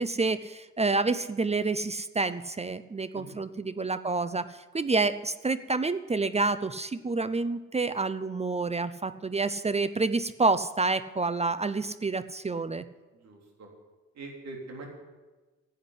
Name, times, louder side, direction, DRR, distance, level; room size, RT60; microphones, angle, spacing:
voice 1, 0.0-12.8, right 3 dB, 20° right, 14 dB, 0.6 m, -28 dB
voice 2, 13.1-13.7 14.1-14.9, right 3 dB, 65° right, 0 dB, 3.9 m, -43 dB
11.0 x 8.1 x 10.0 m, 1.2 s
supercardioid pair, 60°, 29 cm